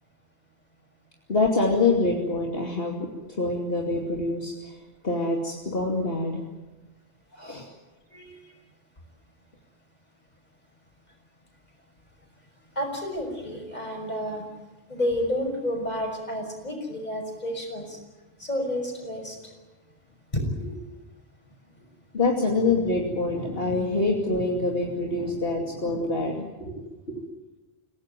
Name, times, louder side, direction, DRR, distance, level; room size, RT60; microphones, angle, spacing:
voice 1, 1.3-4.8 5.0-6.4 7.4-7.7 22.1-26.7 27.1-27.2, left 3 dB, 65° left, 0 dB, 3.0 m, -25 dB
voice 2, 7.3-7.6 8.1-8.6 12.7-14.5 14.9-18.0 18.4-19.5 20.3-20.8, left 1 dB, 40° left, 3 dB, 6.3 m, -30 dB
28.5 x 17.5 x 9.2 m, 1.1 s
omnidirectional pair, 1.1 m